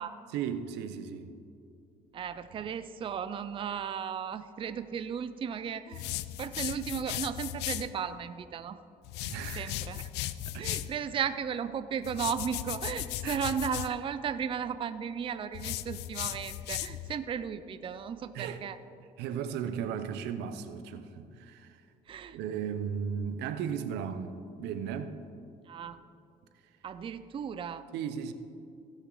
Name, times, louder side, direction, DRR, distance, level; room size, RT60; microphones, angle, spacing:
voice 1, 0.3-1.3 9.3-9.7 10.5-10.7 13.2-13.4 18.3-18.6 19.2-21.8 22.3-25.2 27.9-28.3, right 7 dB, 85° right, 0.7 m, -36 dB
voice 2, 2.1-6.1 6.4-8.8 9.6-10.1 10.6-18.8 22.1-22.4 25.7-26.0 26.8-27.9, right 7 dB, 30° right, 0.4 m, -35 dB
sound 1, 5.9-7.9 9.0-11.0 12.0-13.9 15.5-17.1, left 14 dB, 85° left, 0.4 m, -36 dB
16.5 x 6.5 x 3.9 m
cardioid pair, 110°, 17 cm